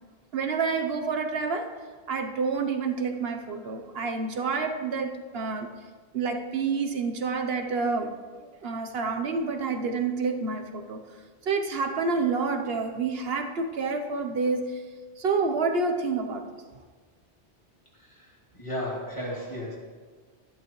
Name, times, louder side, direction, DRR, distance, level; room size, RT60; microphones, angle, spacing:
voice 1, 0.3-1.7 2.1-5.7 6.1-8.1 8.4-11.0 11.4-14.8 15.2-16.4, right 4 dB, 65° right, 5 dB, 1.1 m, -28 dB
voice 2, 18.5-19.8, left 1 dB, 30° left, -5 dB, 2.8 m, -33 dB
12.0 x 11.0 x 3.1 m, 1.5 s
omnidirectional pair, 1.1 m